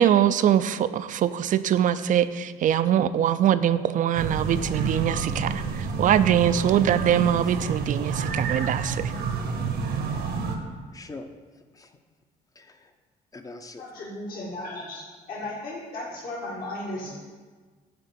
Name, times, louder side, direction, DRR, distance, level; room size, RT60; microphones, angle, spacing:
voice 1, 0.0-9.1, right 10 dB, 50° right, 13 dB, 0.4 m, -23 dB
sound 1, 4.2-10.6, right 5 dB, 70° right, 1.1 m, -29 dB
voice 2, 10.9-11.3 11.5-12.0 12.5-12.9 13.3-13.8, left 3 dB, 20° left, 8 dB, 0.7 m, -43 dB
voice 3, 13.8-17.1, left 1 dB, 60° left, -5 dB, 1.9 m, -35 dB
9.6 x 3.6 x 6.8 m, 1.4 s
cardioid pair, 110°, 17 cm